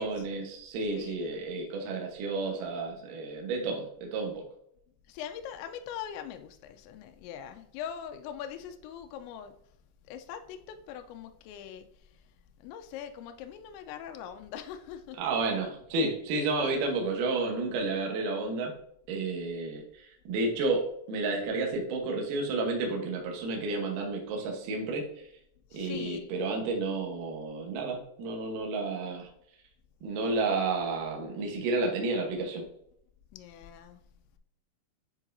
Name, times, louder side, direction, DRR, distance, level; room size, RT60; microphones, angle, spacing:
voice 1, 0.0-4.4 15.2-18.7 19.1-19.8 20.3-25.0 25.7-29.3 30.0-32.6, right 3 dB, 90° right, 0 dB, 1.8 m, -31 dB
voice 2, 0.9-1.3 5.1-9.5 10.1-11.9 12.6-15.2 16.6-16.8 25.7-26.2 33.3-34.0, left 9 dB, 85° left, 7 dB, 2.7 m, -42 dB
9.9 x 3.9 x 2.6 m, 0.73 s
omnidirectional pair, 5.6 m